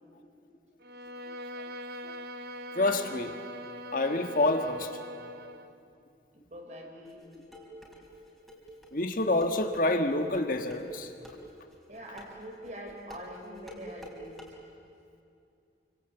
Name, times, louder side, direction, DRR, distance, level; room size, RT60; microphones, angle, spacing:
Bowed string instrument, 0.8-5.7, equal, 60° right, 1.0 m, -42 dB
voice 1, 2.7-3.4 3.9-4.9 8.9-11.1, left 2 dB, 50° left, 6 dB, 1.6 m, -27 dB
voice 2, 6.3-7.4 11.9-14.4, equal, 40° right, 2 dB, 4.5 m, -44 dB
sound 1, 7.0-14.5, equal, ahead, 3.8 m, -48 dB
29.0 x 25.0 x 8.1 m, 2.6 s
head